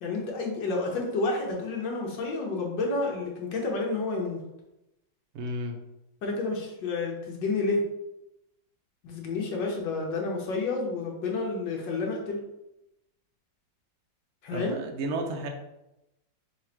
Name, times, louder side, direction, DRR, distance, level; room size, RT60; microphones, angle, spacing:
voice 1, 0.0-4.4 6.2-7.8 9.0-12.4 14.4-14.8, left 3 dB, 75° left, -1 dB, 1.6 m, -30 dB
voice 2, 5.3-5.8 14.5-15.5, right 1 dB, 65° right, 3 dB, 0.8 m, -32 dB
3.9 x 2.5 x 4.4 m, 0.91 s
omnidirectional pair, 2.0 m